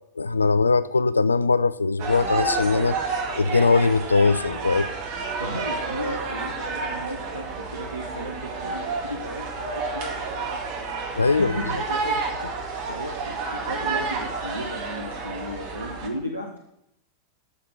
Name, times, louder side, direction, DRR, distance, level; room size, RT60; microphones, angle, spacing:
voice 1, 0.2-3.0 3.4-4.9 11.2-11.6, left 4 dB, 80° left, 17 dB, 0.4 m, -21 dB
sound 1, 2.0-16.1, right 4 dB, 45° right, 2.1 m, -30 dB
voice 2, 5.4-10.6 11.1-12.2 12.9-16.7, equal, 90° right, 1 dB, 1.1 m, -35 dB
8.4 x 7.5 x 7.0 m, 0.81 s
figure-of-eight pair, 90°, 0 cm